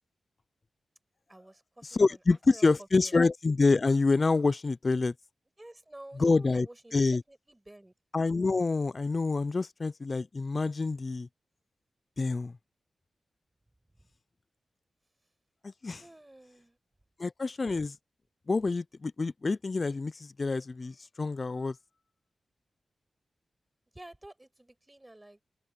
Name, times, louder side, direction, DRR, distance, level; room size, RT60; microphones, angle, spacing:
voice 1, 1.3-2.0 2.3-3.1 5.6-7.9 14.0-14.1 16.0-16.8 23.9-25.4, right 1 dB, 15° right, 7.0 m, -51 dB
voice 2, 1.9-5.1 6.2-6.7 6.9-7.2 8.1-11.3 12.2-12.5 15.6-16.0 17.2-18.0 18.5-21.8, left 3 dB, 40° left, 0.3 m, -27 dB
open air
wide cardioid pair, 90°, 0 cm